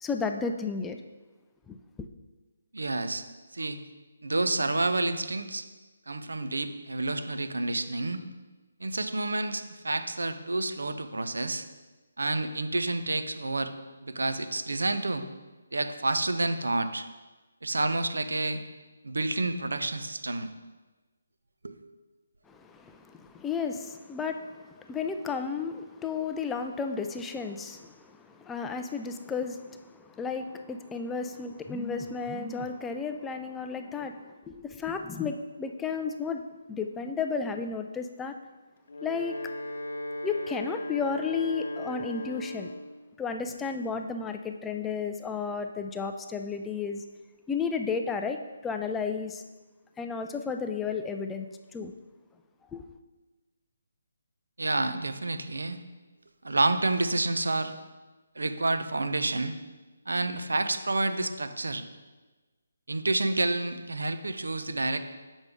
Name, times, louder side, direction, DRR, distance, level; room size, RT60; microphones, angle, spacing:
voice 1, 0.0-1.0 1.7-1.8 22.5-36.4 36.7-38.4 39.0-39.4 40.2-42.7 43.2-47.0 47.5-49.4 50.0-51.5 51.7-51.9 52.7-52.8, left 5 dB, 10° left, 6 dB, 0.3 m, -33 dB
voice 2, 2.7-3.3 3.5-3.8 4.2-5.7 6.1-8.2 8.8-11.6 12.2-13.7 14.0-15.2 15.7-17.1 17.6-18.6 19.0-20.5 21.6-21.8 54.6-55.8 56.4-57.7 58.4-59.6 60.1-61.9 62.9-65.0, right 2 dB, 80° right, 9 dB, 0.5 m, -29 dB
Wind instrument woodwind instrument, 38.8-43.0, left 1 dB, 70° left, 1.0 m, -37 dB
7.1 x 5.1 x 3.5 m, 1.2 s
figure-of-eight pair, 150°, 0 cm